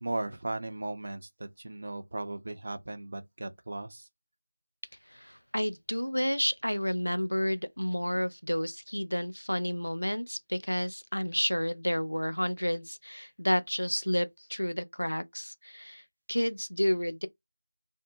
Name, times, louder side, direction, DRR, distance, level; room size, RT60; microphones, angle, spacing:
voice 1, 0.0-4.1, right 2 dB, 45° right, 0.5 m, -37 dB
voice 2, 5.1-16.0 16.3-17.3, equal, 85° left, 0.5 m, -30 dB
2.6 x 2.1 x 2.6 m
figure-of-eight pair, 170°, 0 cm